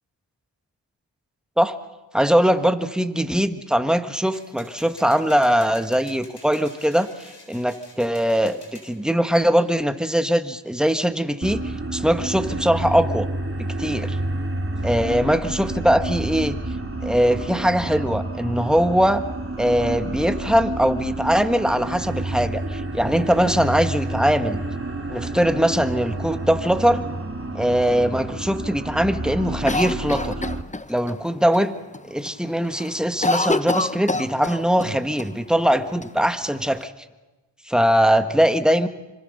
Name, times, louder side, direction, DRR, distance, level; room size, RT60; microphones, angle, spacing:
voice 1, 2.1-7.1 7.5-13.3 13.6-14.2 14.8-16.6 17.0-19.2 19.6-24.6 25.1-27.0 27.5-30.3 30.9-31.7 32.1-36.9 37.7-38.9, equal, ahead, 8 dB, 1.4 m, -21 dB
sound 1, 4.3-8.9, left 2 dB, 60° left, 5.9 m, -47 dB
sound 2, 11.4-30.6, right 2 dB, 30° right, 2.7 m, -29 dB
Cough, 29.7-31.2 31.5-31.6 31.9-32.4 32.6-34.9 35.2-35.3 36.0-36.8, left 2 dB, 15° left, 0.9 m, -26 dB
26.0 x 22.5 x 6.6 m, 1.2 s
cardioid pair, 40°, 45 cm